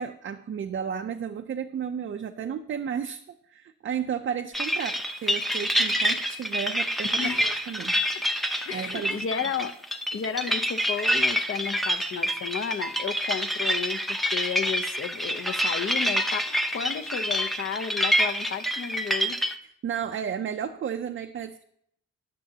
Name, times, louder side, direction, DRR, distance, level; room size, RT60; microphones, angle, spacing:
voice 1, 0.0-3.2 3.5-8.0 8.7-9.2 19.8-21.6, right 8 dB, 40° right, 5 dB, 0.5 m, -33 dB
sound 1, 4.5-19.5, equal, ahead, 0.6 m, -27 dB
voice 2, 7.1-7.5 8.7-9.7 10.1-19.5, left 7 dB, 45° left, 10 dB, 0.7 m, -33 dB
20.0 x 6.9 x 2.8 m, 0.70 s
wide cardioid pair, 155°, 30 cm